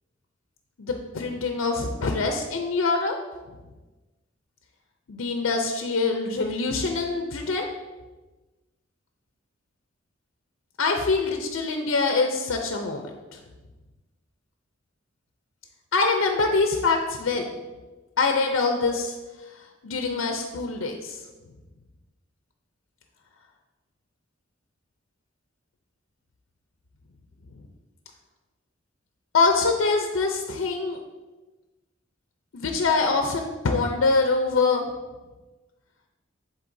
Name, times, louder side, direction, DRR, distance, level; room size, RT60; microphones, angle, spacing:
voice 1, 0.8-3.2 5.1-7.7 10.8-13.4 15.9-17.5 18.2-19.2 19.8-21.2 29.3-31.0 32.5-34.8, left 4 dB, 90° left, 4 dB, 0.6 m, -24 dB
10.0 x 4.0 x 2.6 m, 1.2 s
head